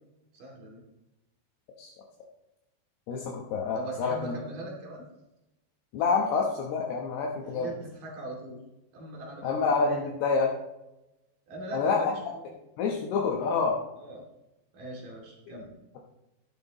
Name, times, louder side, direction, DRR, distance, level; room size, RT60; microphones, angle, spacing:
voice 1, 0.3-0.8 3.7-5.0 7.4-8.6 8.9-10.0 11.5-12.1 14.0-14.2 14.7-15.7, right 1 dB, 55° right, -2 dB, 4.0 m, -40 dB
voice 2, 3.1-4.4 5.9-7.7 9.4-10.5 11.7-12.1 12.8-13.8, left 5 dB, 75° left, -1 dB, 3.0 m, -27 dB
12.0 x 12.0 x 3.0 m, 0.95 s
omnidirectional pair, 5.0 m